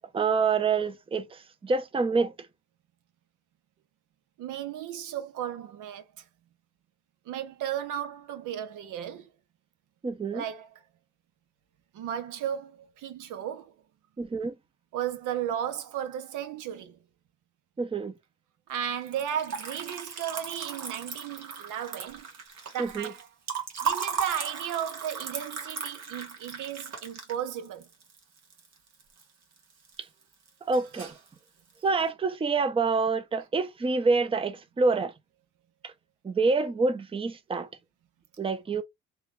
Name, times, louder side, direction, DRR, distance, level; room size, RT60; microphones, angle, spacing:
voice 1, 0.1-2.3 10.0-10.4 14.2-14.5 17.8-18.1 22.8-23.1 30.7-31.1 31.8-35.1 35.8-35.9 36.2-37.7 38.4-38.8, right 4 dB, 20° right, 0.5 m, -27 dB
voice 2, 4.4-6.2 7.3-9.3 10.3-10.8 11.9-13.7 14.9-17.0 18.7-22.3 22.7-23.3 23.8-27.9, right 10 dB, 85° right, 0.7 m, -34 dB
Liquid, 19.0-29.2 29.6-30.2 30.5-31.3, right 6 dB, 60° right, 1.4 m, -36 dB
3.1 x 2.3 x 3.1 m
cardioid pair, 90°, 30 cm